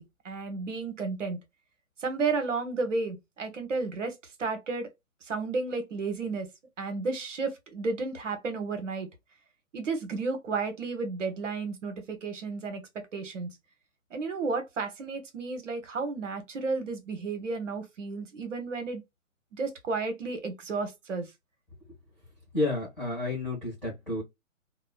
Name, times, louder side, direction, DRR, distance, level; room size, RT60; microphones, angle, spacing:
voice 1, 0.0-1.4 2.0-4.9 5.2-6.5 6.8-9.1 9.7-13.5 14.1-19.0 19.5-21.3, right 4 dB, 65° right, 1.0 m, -32 dB
voice 2, 22.5-24.2, left 2 dB, ahead, 1.3 m, -30 dB
3.0 x 2.1 x 2.3 m
figure-of-eight pair, 140°, 41 cm